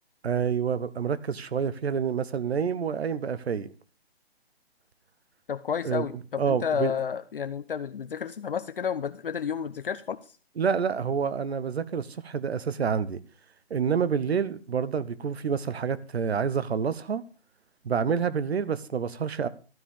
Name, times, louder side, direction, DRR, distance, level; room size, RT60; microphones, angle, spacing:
voice 1, 0.2-3.7 5.8-6.1 6.4-6.9 10.6-13.2 13.7-17.2 17.8-19.5, right 6 dB, 85° right, 1.1 m, -28 dB
voice 2, 5.5-10.2, left 7 dB, 60° left, 0.8 m, -31 dB
12.5 x 5.6 x 6.5 m
hypercardioid pair, 175°, 31 cm